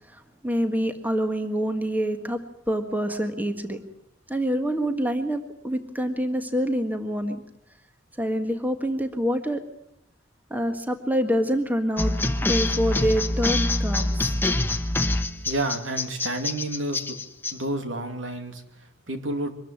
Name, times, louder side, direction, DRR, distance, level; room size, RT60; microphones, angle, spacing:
voice 1, 0.0-2.4 2.7-3.8 4.3-7.4 8.2-9.6 10.5-12.1 12.4-14.3, equal, 10° right, 7 dB, 1.6 m, -26 dB
sound 1, 12.0-17.5, left 2 dB, 10° left, 1.2 m, -25 dB
voice 2, 15.4-17.2 17.5-19.5, right 1 dB, 70° right, 6 dB, 2.7 m, -30 dB
24.0 x 14.0 x 9.6 m, 0.73 s
head